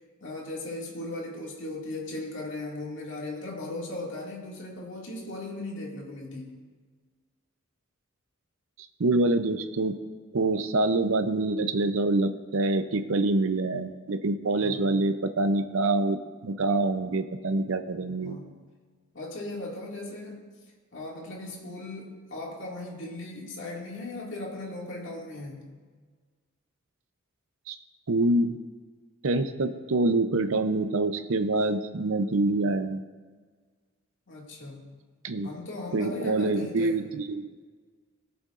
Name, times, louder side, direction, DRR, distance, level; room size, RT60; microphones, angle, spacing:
voice 1, 0.2-6.6 12.8-12.9 14.6-15.1 18.2-18.6 19.1-20.5 20.9-25.7 34.3-35.0 35.4-37.0, left 2 dB, 60° left, -3 dB, 2.1 m, -38 dB
voice 2, 9.0-10.0 10.3-16.2 16.4-18.4 27.7-27.8 28.1-28.6 29.2-33.0 35.2-35.5 35.9-37.5, right 2 dB, 70° right, 9 dB, 0.6 m, -26 dB
20.0 x 7.0 x 2.5 m, 1.5 s
head